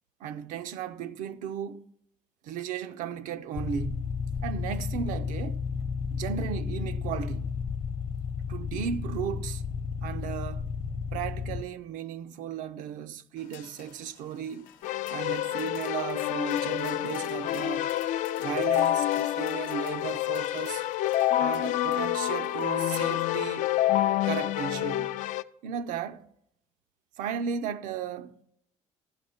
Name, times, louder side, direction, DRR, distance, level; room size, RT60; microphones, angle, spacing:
voice 1, 0.2-1.9 2.4-5.6 6.1-7.6 8.5-9.6 10.0-10.7 11.1-14.7 15.1-17.9 18.4-20.8 21.4-23.7 24.2-25.2 25.6-26.3 27.2-28.4, right 8 dB, 80° right, 0.6 m, -35 dB
sound 1, 3.5-11.6, left 6 dB, 45° left, 0.7 m, -33 dB
sound 2, 13.4-23.3, left 10 dB, 90° left, 0.8 m, -53 dB
Keyboard (musical), 14.8-25.4, left 14 dB, 70° left, 0.4 m, -28 dB
13.0 x 5.4 x 4.3 m
cardioid pair, 130°, 13 cm